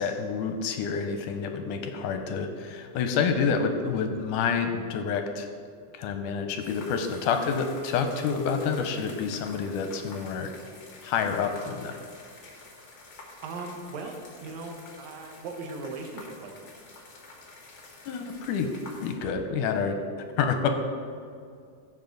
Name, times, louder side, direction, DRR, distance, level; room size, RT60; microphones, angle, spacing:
voice 1, 0.0-5.5 5.9-10.5 11.0-12.0 18.1-18.7 19.0-20.0 20.4-20.7, left 6 dB, 80° left, 6 dB, 2.1 m, -28 dB
sound 1, 6.6-19.1, left 3 dB, 50° left, 1.2 m, -48 dB
voice 2, 13.4-16.5, right 3 dB, 65° right, 3 dB, 2.1 m, -38 dB
15.5 x 7.2 x 3.9 m, 2.3 s
omnidirectional pair, 3.9 m